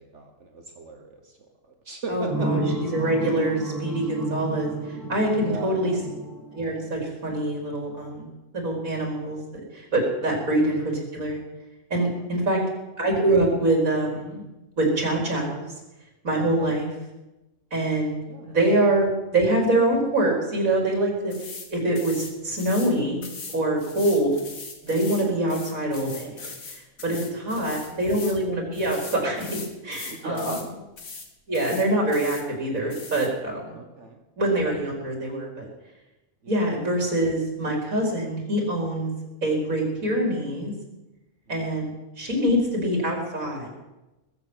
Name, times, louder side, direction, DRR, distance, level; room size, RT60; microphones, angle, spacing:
voice 1, 0.0-1.4 1.6-2.8 5.3-6.0 10.2-10.4 12.1-12.5 16.4-16.8 18.3-18.6 27.5-28.0 30.1-30.7 33.7-34.2 36.4-36.6 41.5-41.8, right 3 dB, 60° right, 3 dB, 1.6 m, -38 dB
voice 2, 2.1-2.6 2.9-4.7 5.1-5.9 6.5-8.3 8.5-9.4 9.7-11.4 11.9-12.6 13.0-14.4 14.8-15.6 16.2-16.9 17.7-21.3 21.7-23.2 23.5-24.3 24.8-26.4 26.7-30.5 31.5-33.8 34.4-35.7 36.5-39.1 39.4-40.7 41.5-41.9 42.2-43.7, right 1 dB, 85° right, 0 dB, 4.4 m, -24 dB
sound 1, 2.3-7.1, right 1 dB, 10° right, 2.8 m, -31 dB
sound 2, 21.3-21.7 22.0-22.9 23.2-28.4 28.7-30.7 31.0-31.3 31.5-32.4 32.9-33.3, left 4 dB, 85° left, 2.2 m, -40 dB
20.5 x 6.9 x 7.8 m, 1.0 s
omnidirectional pair, 1.4 m